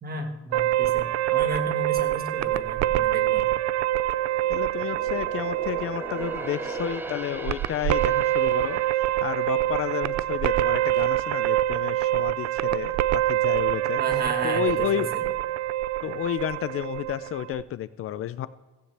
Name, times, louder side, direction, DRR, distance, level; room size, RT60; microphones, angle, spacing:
voice 1, 0.0-3.5 14.0-15.2, right 2 dB, 30° right, 4 dB, 1.6 m, -34 dB
sound 1, 0.5-17.6, right 14 dB, 65° right, 0.4 m, -26 dB
sound 2, 3.8-11.3 11.7-11.9 12.5-13.2 13.5-13.6, right 1 dB, 5° right, 0.5 m, -40 dB
voice 2, 4.5-8.8 9.2-14.0 14.4-15.1 16.0-18.5, left 11 dB, 50° left, 15 dB, 0.4 m, -31 dB
16.5 x 15.5 x 3.3 m, 1.2 s
cardioid pair, 180°, 29 cm